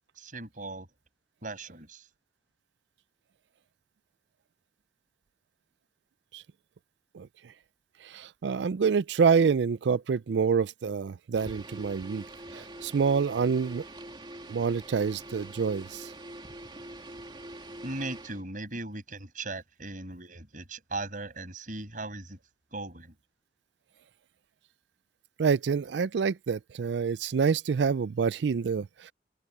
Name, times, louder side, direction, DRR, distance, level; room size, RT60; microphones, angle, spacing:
voice 1, 0.2-0.9 1.4-2.1 17.8-22.4 22.7-23.1, right 2 dB, 45° right, 6.1 m, -38 dB
voice 2, 8.0-12.2 12.5-13.8 14.5-16.1 25.4-29.1, right 5 dB, 70° right, 0.4 m, -27 dB
sound 1, 11.4-18.4, right 1 dB, 25° right, 2.4 m, -44 dB
head